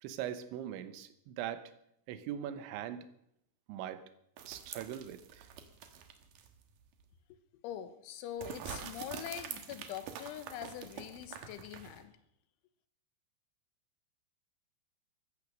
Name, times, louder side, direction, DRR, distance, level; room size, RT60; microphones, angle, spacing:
voice 1, 0.0-1.7 2.1-3.1 3.7-4.0 4.4-5.5, right 10 dB, 80° right, 11 dB, 3.3 m, -41 dB
sound 1, 4.4-6.6 7.0-7.1 8.4-12.0, right 8 dB, 65° right, 2.4 m, -46 dB
voice 2, 7.6-12.1, left 10 dB, 85° left, 11 dB, 3.6 m, -43 dB
15.0 x 14.0 x 6.4 m, 0.75 s
omnidirectional pair, 5.4 m